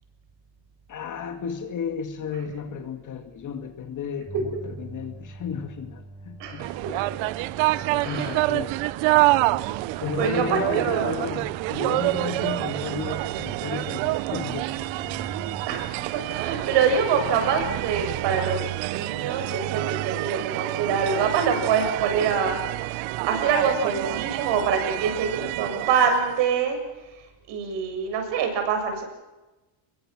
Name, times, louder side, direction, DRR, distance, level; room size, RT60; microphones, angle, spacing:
voice 1, 0.9-6.8 7.9-8.8 10.0-15.1, left 6 dB, 40° left, 6 dB, 2.3 m, -33 dB
sound 1, 4.3-15.7, right 2 dB, 10° right, 1.9 m, -43 dB
voice 2, 6.4-6.7 8.0-8.4 9.9-11.3 15.7-26.8 27.5-29.0, right 6 dB, 65° right, 5 dB, 7.0 m, -25 dB
sound 2, 6.6-26.4, right 20 dB, 80° right, 0.8 m, -27 dB
27.5 x 22.5 x 6.2 m, 1.1 s
cardioid pair, 145°, 46 cm